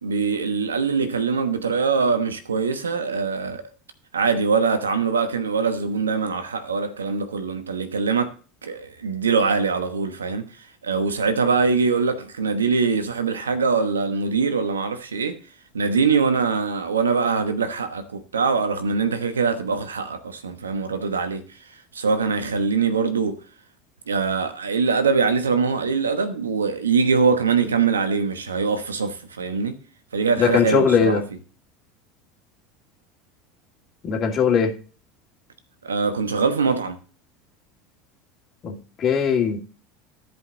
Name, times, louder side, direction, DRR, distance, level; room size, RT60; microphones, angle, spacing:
voice 1, 0.0-3.6 4.1-8.3 8.6-10.5 10.8-15.4 15.7-21.5 21.9-23.4 24.1-29.8 30.1-31.2 35.8-37.0, right 5 dB, 85° right, 1.1 m, -23 dB
voice 2, 30.4-31.2 34.0-34.7 38.6-39.6, left 6 dB, 40° left, 2.3 m, -20 dB
13.5 x 5.2 x 4.0 m
hypercardioid pair, 80°, 0 cm